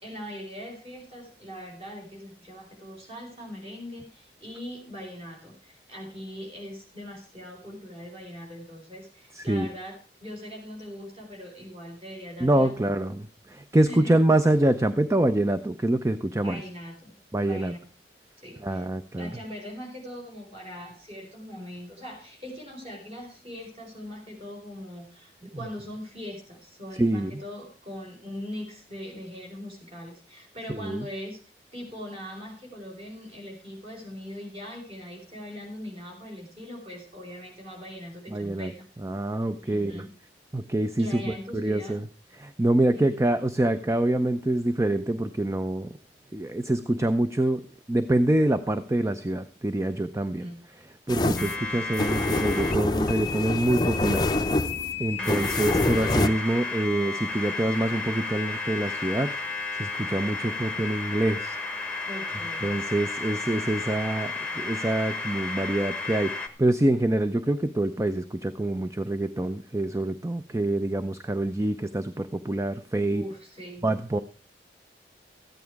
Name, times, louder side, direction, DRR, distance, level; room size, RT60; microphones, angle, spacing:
voice 1, 0.0-12.8 13.9-14.2 16.4-17.1 17.4-17.8 18.4-18.9 19.2-31.4 31.7-38.9 39.6-40.1 41.0-42.0 42.9-43.2 50.2-50.6 55.2-55.6 62.1-62.8 73.1-73.9, equal, 35° right, 0 dB, 4.8 m, -41 dB
voice 2, 9.3-9.7 12.4-16.6 17.3-17.7 18.6-19.3 27.0-27.4 30.7-31.1 38.3-38.7 39.0-40.1 40.5-42.1 42.4-45.9 46.3-47.6 47.9-54.5 55.0-59.3 59.7-61.6 62.6-73.2 73.8-74.2, right 1 dB, 15° right, 10 dB, 0.5 m, -26 dB
sound 1, 51.1-56.3, left 2 dB, 25° left, 0.6 m, -26 dB
sound 2, 51.4-52.8 53.1-66.5, left 4 dB, 5° left, 1.1 m, -33 dB
14.0 x 9.2 x 4.7 m, 0.37 s
head